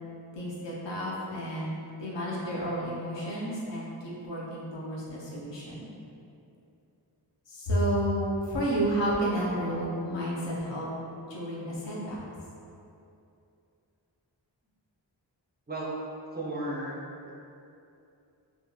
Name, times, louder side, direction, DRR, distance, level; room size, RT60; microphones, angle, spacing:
voice 1, 0.3-5.9 7.5-10.9 11.3-12.2, equal, 75° left, -5 dB, 0.7 m, -31 dB
voice 2, 16.3-17.0, right 1 dB, 25° right, -5 dB, 0.5 m, -34 dB
2.7 x 2.6 x 2.2 m, 2.7 s
wide cardioid pair, 75°, 43 cm